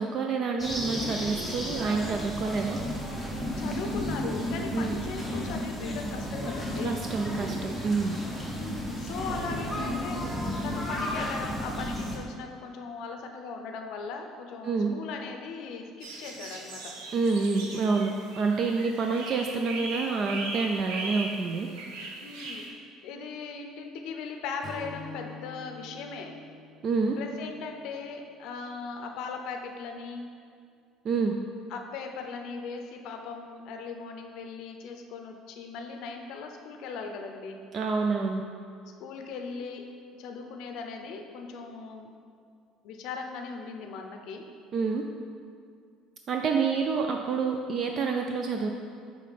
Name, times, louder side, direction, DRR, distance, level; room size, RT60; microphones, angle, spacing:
voice 1, 0.0-2.8 4.7-5.0 6.8-8.2 14.6-14.9 17.1-21.7 26.8-27.2 31.0-31.3 37.7-38.4 44.7-45.0 46.3-48.7, right 4 dB, 35° right, 3 dB, 0.3 m, -28 dB
sound 1, 0.6-12.2, equal, 5° right, 0.8 m, -33 dB
voice 2, 3.6-7.0 8.5-10.2 10.6-16.9 22.2-26.3 27.2-30.3 31.7-37.6 39.0-39.9 40.2-42.1 42.8-44.5, left 5 dB, 60° left, 4 dB, 0.6 m, -39 dB
sound 2, 16.0-22.7, right 3 dB, 85° right, 0.8 m, -39 dB
Strum, 24.6-29.0, left 3 dB, 25° left, 0.7 m, -47 dB
5.7 x 3.7 x 5.1 m, 2.2 s
cardioid pair, 160°, 0 cm